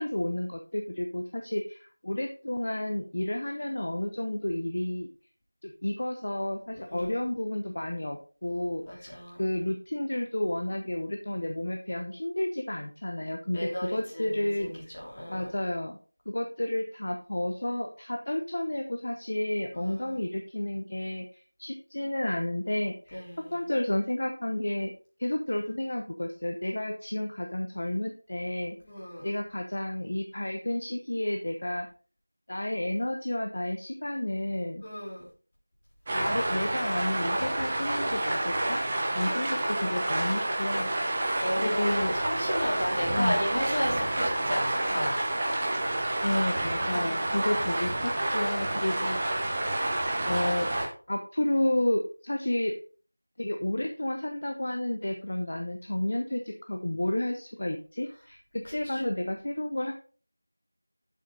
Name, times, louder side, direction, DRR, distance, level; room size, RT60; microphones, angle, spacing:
voice 1, 0.0-5.1 5.6-9.1 9.4-14.7 15.3-16.0 16.3-23.2 23.5-24.9 25.2-28.7 29.2-31.9 32.5-34.8 36.1-38.8 39.1-40.9 41.1-42.1 43.1-43.4 46.2-49.6 50.2-50.7 51.1-52.7 53.4-59.9, left 1 dB, 45° left, 4 dB, 1.0 m, -31 dB
voice 2, 6.7-7.1 8.9-9.4 13.5-14.7 15.1-15.5 19.7-20.2 23.1-23.7 28.8-29.3 34.8-35.3 41.4-45.2 46.7-47.4 48.8-49.2 58.9-59.0, equal, 25° left, -6 dB, 3.4 m, -34 dB
sound 1, 36.1-50.9, right 1 dB, 20° right, 1.0 m, -29 dB
7.6 x 7.6 x 4.0 m, 0.39 s
figure-of-eight pair, 175°, 0 cm